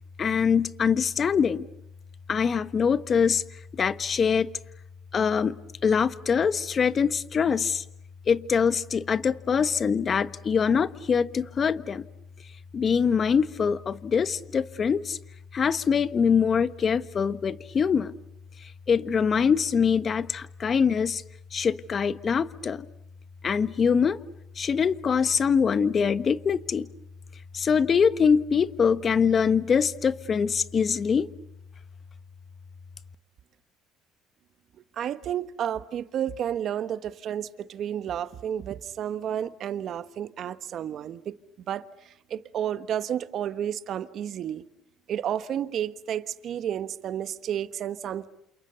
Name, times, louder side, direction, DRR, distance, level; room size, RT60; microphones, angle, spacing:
voice 1, 0.2-1.7 2.3-3.4 3.7-4.5 5.1-5.6 5.8-7.8 8.3-12.0 12.7-15.2 15.5-18.1 18.9-21.2 21.5-22.9 23.4-24.2 24.6-26.9 27.5-31.3, left 6 dB, 40° left, 1.3 m, -23 dB
voice 2, 34.9-41.4 41.7-44.6 45.1-48.3, right 10 dB, 55° right, 1.3 m, -31 dB
29.5 x 28.0 x 6.9 m
supercardioid pair, 90°, 0 cm